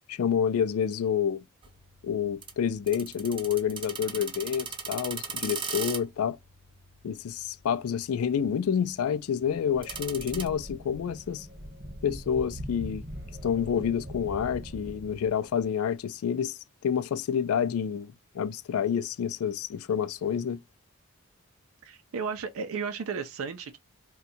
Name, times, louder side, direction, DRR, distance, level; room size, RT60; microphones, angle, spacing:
voice 1, 0.1-1.4 2.0-6.4 7.0-11.5 12.0-13.0 13.4-20.6, left 8 dB, 90° left, 0.3 m, -28 dB
sound 1, 1.6-10.5, right 6 dB, 25° right, 0.5 m, -40 dB
sound 2, 9.5-15.6, equal, 45° right, 1.0 m, -42 dB
voice 2, 21.8-23.8, right 5 dB, 80° right, 0.4 m, -34 dB
2.6 x 2.2 x 4.0 m
head